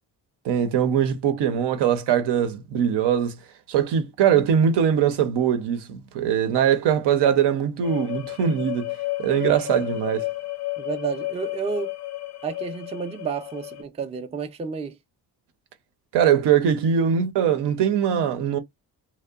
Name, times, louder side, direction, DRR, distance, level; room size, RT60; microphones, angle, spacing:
voice 1, 0.4-3.4 3.7-8.9 9.2-10.3 16.1-18.6, right 8 dB, 80° right, 0.6 m, -21 dB
sound 1, 7.8-13.8, left 19 dB, 45° left, 0.4 m, -32 dB
voice 2, 10.8-11.9 12.4-15.0, right 6 dB, 15° right, 0.3 m, -31 dB
2.7 x 2.1 x 2.2 m
cardioid pair, 85°, 40 cm